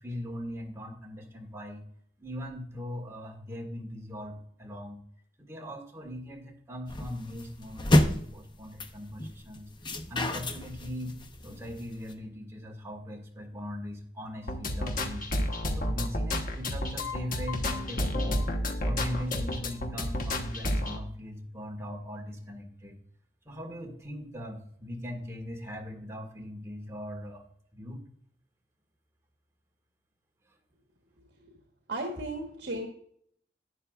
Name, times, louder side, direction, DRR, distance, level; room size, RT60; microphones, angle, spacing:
voice 1, 0.0-1.8 2.2-5.0 5.4-9.7 10.1-11.1 11.4-15.3 15.7-18.4 18.8-23.0 23.4-27.4 27.7-28.0, left 1 dB, 15° right, 1 dB, 1.6 m, -40 dB
sound 1, 6.9-12.1, left 1 dB, 25° left, 0.8 m, -29 dB
sound 2, 14.5-21.0, left 1 dB, 50° left, 1.1 m, -31 dB
voice 2, 31.9-32.9, right 1 dB, 70° right, 2 dB, 1.4 m, -34 dB
11.5 x 9.4 x 2.4 m, 0.66 s
head